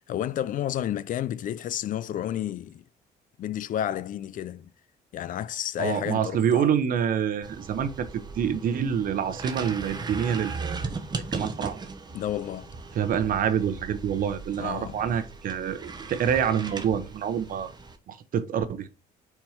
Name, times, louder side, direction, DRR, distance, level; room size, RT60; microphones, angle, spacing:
voice 1, 0.1-2.8 3.4-4.7 5.1-6.7 12.1-12.7 14.6-15.0, left 11 dB, 50° left, 0.5 m, -31 dB
voice 2, 5.8-10.8 11.3-11.8 12.9-17.7 18.1-18.9, right 8 dB, 55° right, 0.9 m, -27 dB
sound 1, 7.4-18.0, right 4 dB, 25° right, 1.2 m, -38 dB
4.7 x 4.3 x 5.6 m
cardioid pair, 110°, 17 cm